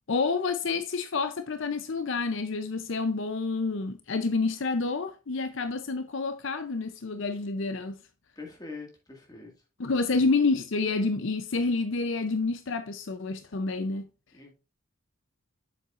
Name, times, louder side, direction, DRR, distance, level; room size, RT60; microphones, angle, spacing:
voice 1, 0.1-8.0 9.8-14.0, left 3 dB, 65° left, 0.6 m, -28 dB
voice 2, 8.4-9.5 10.1-10.2 14.3-14.5, left 3 dB, 20° left, 1.9 m, -43 dB
7.4 x 7.3 x 2.5 m
head